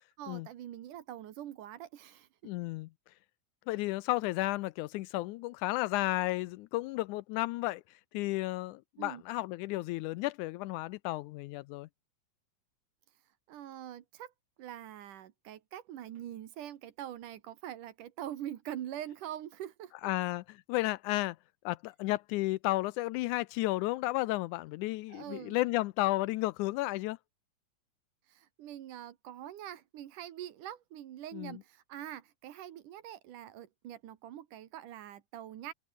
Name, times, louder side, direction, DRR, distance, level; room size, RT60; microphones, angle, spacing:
voice 1, 0.2-2.3 9.0-9.2 13.5-14.3 14.6-20.1 25.1-25.6 28.3-35.7, right 11 dB, 90° right, 3.1 m, -44 dB
voice 2, 2.4-2.9 3.7-7.8 8.1-11.9 20.0-21.4 21.7-27.2 31.3-31.6, left 19 dB, 85° left, 2.0 m, -33 dB
open air
omnidirectional pair, 3.5 m